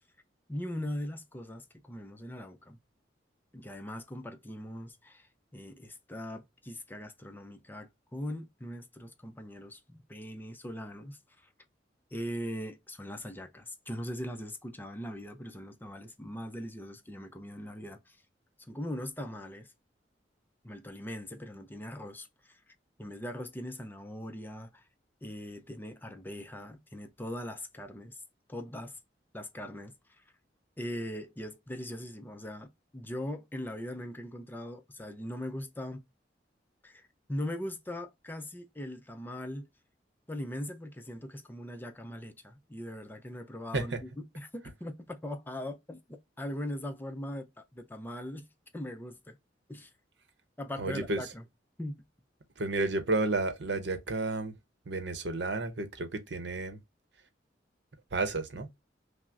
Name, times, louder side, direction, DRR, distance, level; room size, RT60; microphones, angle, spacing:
voice 1, 0.5-2.8 3.5-11.5 12.1-18.2 18.6-19.7 20.6-24.9 25.2-28.2 28.5-29.0 29.3-30.2 30.8-36.0 36.8-39.7 40.3-46.0 46.4-48.5 48.7-49.4 49.7-49.9 50.6-51.4 51.8-52.0, left 1 dB, 10° left, 0.4 m, -40 dB
voice 2, 50.8-51.2 52.6-54.5 54.9-56.8 58.1-58.8, right 2 dB, 75° right, 0.8 m, -31 dB
5.8 x 2.0 x 2.5 m
head